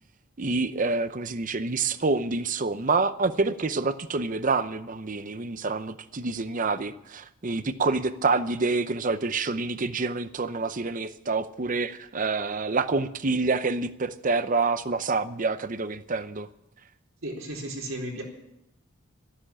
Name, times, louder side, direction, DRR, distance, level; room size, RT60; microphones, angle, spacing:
voice 1, 0.4-16.5, right 3 dB, 40° right, 13 dB, 0.7 m, -27 dB
voice 2, 17.2-18.2, right 1 dB, 70° right, 0 dB, 4.1 m, -34 dB
12.5 x 12.5 x 8.7 m, 0.84 s
head